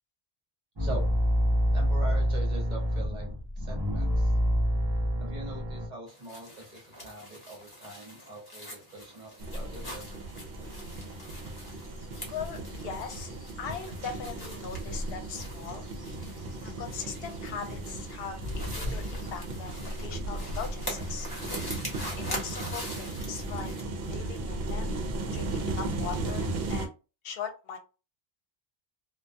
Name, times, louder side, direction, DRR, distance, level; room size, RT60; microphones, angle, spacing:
sound 1, 0.8-5.9, equal, 30° right, 0.7 m, -27 dB
voice 1, 1.7-3.3 3.6-4.3 5.2-10.2, right 2 dB, 50° right, 0 dB, 1.0 m, -42 dB
sound 2, 6.1-23.8, equal, 25° left, 0.9 m, -44 dB
sound 3, 9.4-26.9, right 2 dB, 75° right, 0.8 m, -36 dB
voice 2, 12.3-13.3 13.6-15.9 16.6-21.3 22.2-23.7 24.1-24.9 25.3-26.9 27.2-27.8, left 6 dB, 75° left, 6 dB, 0.8 m, -40 dB
2.2 x 2.2 x 2.5 m, 0.31 s
omnidirectional pair, 1.0 m